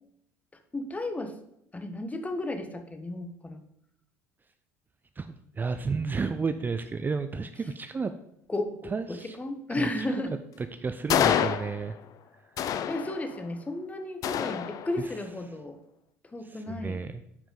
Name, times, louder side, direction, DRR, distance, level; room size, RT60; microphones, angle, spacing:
voice 1, 0.7-1.3 1.7-3.6 8.5-10.3 12.9-15.8 16.3-17.0, left 2 dB, 20° left, 7 dB, 1.2 m, -33 dB
voice 2, 5.2-8.1 8.8-9.4 9.7-9.9 10.6-11.9 15.0-15.1 16.4-17.2, right 4 dB, 25° right, 9 dB, 0.5 m, -32 dB
sound 1, 11.1-12.1 12.6-13.5 14.2-15.2, left 9 dB, 50° left, 0.5 m, -28 dB
10.0 x 4.9 x 3.8 m, 0.76 s
hypercardioid pair, 65°, 8 cm